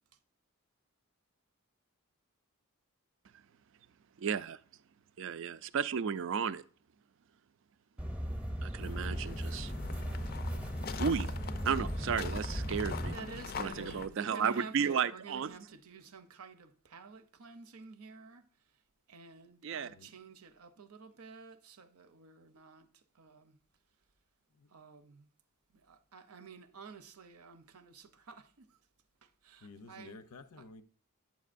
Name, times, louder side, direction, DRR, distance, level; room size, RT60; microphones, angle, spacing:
voice 1, 4.2-4.6 5.2-6.6 8.6-9.7 11.0-11.3 11.6-13.1 13.6-15.5 19.6-19.9, right 7 dB, 60° right, 0.3 m, -33 dB
sound 1, 8.0-13.1, equal, 5° right, 0.7 m, -37 dB
sound 2, 8.8-14.1, left 5 dB, 45° left, 0.4 m, -43 dB
voice 2, 13.1-18.4 19.1-23.6 24.7-25.3 25.7-28.8 29.2-30.2, right 5 dB, 85° right, 0.7 m, -51 dB
voice 3, 19.7-20.1 24.5-24.8 29.6-30.8, left 3 dB, 90° left, 0.6 m, -52 dB
9.2 x 7.2 x 2.5 m
head